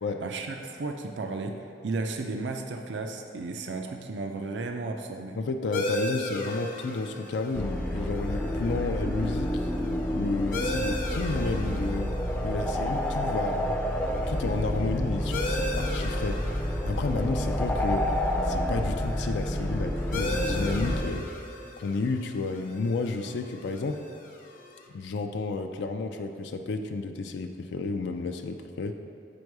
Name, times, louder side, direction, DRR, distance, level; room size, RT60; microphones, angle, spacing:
voice 1, 0.2-5.4, right 3 dB, 85° right, 4 dB, 0.5 m, -34 dB
voice 2, 5.4-9.7 10.1-12.1 12.4-13.8 14.3-16.5 16.8-18.1 18.4-21.3 21.8-24.0 24.9-28.9, left 3 dB, 75° left, 5 dB, 0.4 m, -31 dB
sound 1, 5.7-24.9, left 1 dB, 50° left, 0.7 m, -38 dB
sound 2, 7.5-21.0, equal, 10° left, 0.4 m, -29 dB
7.8 x 5.3 x 4.7 m, 2.5 s
head